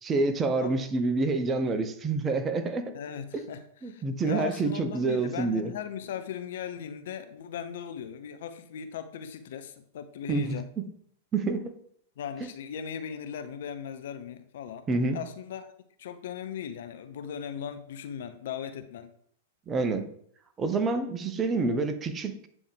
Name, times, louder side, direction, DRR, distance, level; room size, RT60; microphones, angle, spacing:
voice 1, 0.0-2.9 3.3-3.4 3.8-5.7 10.3-10.6 11.3-11.8 12.4-12.5 14.9-15.2 19.7-20.0 20.6-22.4, right 3 dB, 20° right, 0.7 m, -27 dB
voice 2, 2.9-10.7 12.2-14.9 15.1-15.7 16.0-19.1, left 8 dB, 60° left, 0.5 m, -38 dB
8.2 x 3.5 x 3.4 m
figure-of-eight pair, 100°, 0 cm